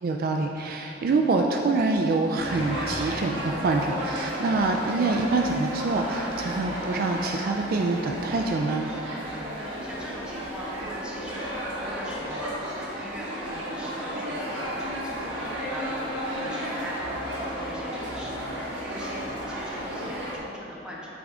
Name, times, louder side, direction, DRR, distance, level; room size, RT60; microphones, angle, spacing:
voice 1, 0.0-8.8, right 3 dB, 50° right, 2 dB, 0.3 m, -25 dB
sound 1, 2.3-20.4, equal, 70° right, 1.2 m, -33 dB
voice 2, 9.5-21.1, equal, 5° right, -6 dB, 1.1 m, -41 dB
9.4 x 3.5 x 3.7 m, 2.9 s
head